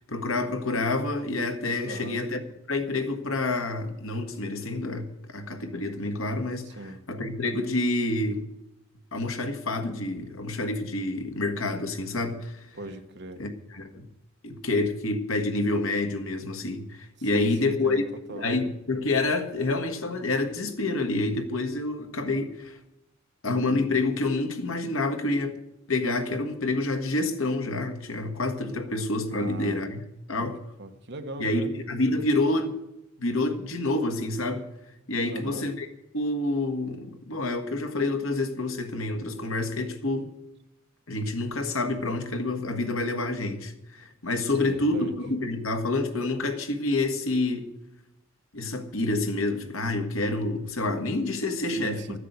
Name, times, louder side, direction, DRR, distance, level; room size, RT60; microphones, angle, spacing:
voice 1, 0.1-2.4 2.7-6.8 7.1-8.4 9.1-12.6 13.4-14.0 14.4-18.0 18.3-22.8 23.4-25.6 25.9-30.0 30.3-30.6 31.4-32.8 33.2-34.7 35.1-35.9 36.1-40.3 41.1-47.7 48.5-52.2, left 2 dB, 80° left, 1.6 m, -28 dB
voice 2, 1.8-2.3 6.6-7.0 12.7-13.4 17.2-18.5 29.3-29.8 30.4-31.7 35.2-35.7 44.6-45.2 51.7-52.2, right 2 dB, 55° right, 1.3 m, -40 dB
13.0 x 9.9 x 8.1 m
head